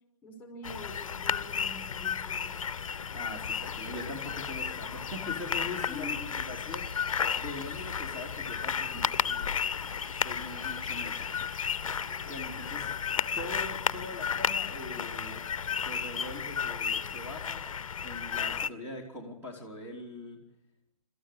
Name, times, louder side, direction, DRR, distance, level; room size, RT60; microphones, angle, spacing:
voice 1, 0.2-2.6 5.8-6.2 8.9-9.0, left 2 dB, 10° left, 4 dB, 5.0 m, -45 dB
sound 1, 0.6-18.7, left 7 dB, 70° left, 0.7 m, -33 dB
voice 2, 3.1-6.2 6.5-6.9 7.4-9.6 10.1-11.3 12.2-15.4 15.8-17.6 18.0-20.4, left 2 dB, 10° right, 0 dB, 3.4 m, -42 dB
sound 2, 3.8-18.0, right 2 dB, 80° right, 2.9 m, -53 dB
27.0 x 13.5 x 8.5 m, 0.88 s
figure-of-eight pair, 130°, 18 cm